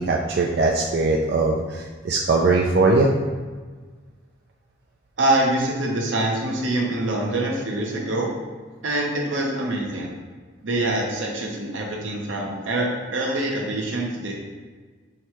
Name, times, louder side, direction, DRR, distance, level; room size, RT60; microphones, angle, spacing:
voice 1, 0.0-3.1, right 3 dB, 55° right, -1 dB, 0.3 m, -20 dB
voice 2, 5.2-8.3 8.8-10.1 10.6-14.3, right 1 dB, 85° right, -1 dB, 0.8 m, -25 dB
6.1 x 2.2 x 2.9 m, 1.4 s
head